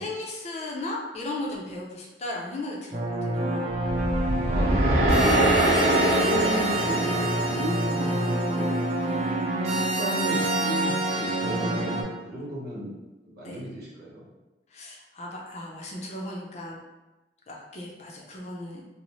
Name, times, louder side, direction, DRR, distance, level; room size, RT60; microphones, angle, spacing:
voice 1, 0.0-3.8 5.6-5.8 13.4-13.6 14.7-16.8 17.5-18.8, left 2 dB, 40° left, -2 dB, 0.5 m, -36 dB
sound 1, 2.9-12.0, right 2 dB, 40° right, 0.4 m, -27 dB
sound 2, 3.8-8.2, right 1 dB, 90° right, 0.8 m, -24 dB
voice 2, 4.4-5.1 6.0-8.8 9.7-12.9 13.2-14.2, equal, 65° right, -5 dB, 0.9 m, -34 dB
2.6 x 2.0 x 2.9 m, 1.1 s
head